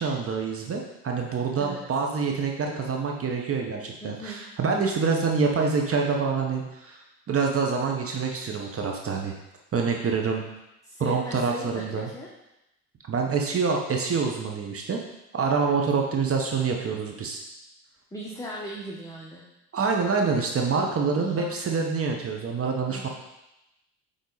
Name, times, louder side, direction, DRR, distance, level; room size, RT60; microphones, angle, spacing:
voice 1, 0.0-9.3 9.7-10.4 11.0-12.1 13.1-15.0 15.3-17.4 19.7-23.1, right 5 dB, 30° right, 1 dB, 1.1 m, -26 dB
voice 2, 4.0-4.4 10.8-12.3 18.1-19.5 21.2-21.5 22.9-23.1, equal, 5° left, -4 dB, 1.3 m, -38 dB
8.2 x 3.9 x 4.1 m, 0.90 s
hypercardioid pair, 70°, 47 cm